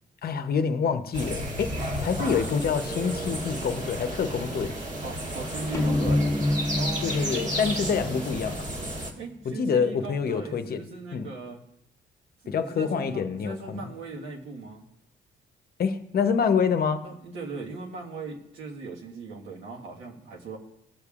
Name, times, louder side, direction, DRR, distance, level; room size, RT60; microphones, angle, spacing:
voice 1, 0.2-4.7 7.0-8.7 9.4-10.8 11.1-11.3 12.5-13.8 15.8-17.0, left 6 dB, 50° left, 8 dB, 0.7 m, -27 dB
sound 1, 1.1-9.1, equal, 40° right, 1.6 m, -32 dB
voice 2, 5.0-6.3 6.7-7.1 9.2-11.6 12.5-14.8 17.0-20.6, right 3 dB, 80° right, -2 dB, 1.5 m, -39 dB
sound 2, 5.7-9.2, left 1 dB, 15° left, 0.8 m, -28 dB
18.0 x 6.8 x 2.4 m, 0.82 s
cardioid pair, 90°, 20 cm